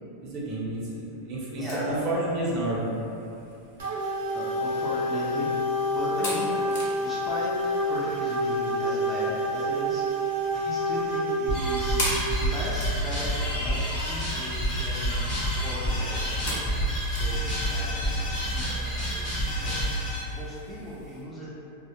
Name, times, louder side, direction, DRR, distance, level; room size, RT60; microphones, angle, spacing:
voice 1, 0.2-2.9, right 1 dB, 40° right, -5 dB, 0.5 m, -30 dB
voice 2, 1.6-2.0 4.3-6.6 7.0-7.6 7.8-16.6 17.1-20.0 20.3-21.6, equal, 5° left, -9 dB, 0.5 m, -37 dB
sound 1, 1.7-21.2, left 1 dB, 60° left, 0.7 m, -40 dB
sound 2, 3.8-12.2, equal, 90° right, 0.6 m, -28 dB
sound 3, 11.5-20.2, equal, 35° left, 0.9 m, -28 dB
2.1 x 2.0 x 2.8 m, 2.7 s
supercardioid pair, 145°, 0 cm